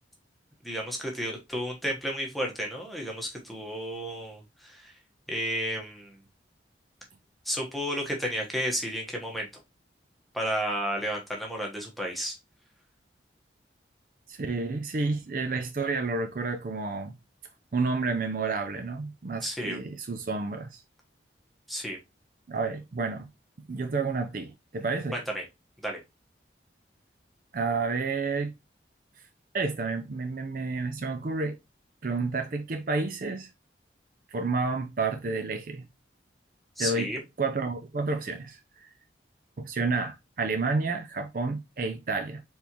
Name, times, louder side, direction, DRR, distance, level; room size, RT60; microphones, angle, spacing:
voice 1, 0.6-4.9 5.3-6.2 7.4-9.5 10.3-12.4 19.4-19.8 21.7-22.0 25.1-25.4 25.8-26.0 36.8-37.2, equal, ahead, 1.0 m, -32 dB
voice 2, 14.3-17.1 17.7-20.8 22.5-23.3 23.7-25.2 27.5-28.5 29.5-31.6 32.0-33.5 34.3-35.9 36.8-37.1 37.4-38.9 39.6-42.4, right 3 dB, 50° right, 0.5 m, -30 dB
4.4 x 3.4 x 2.9 m
head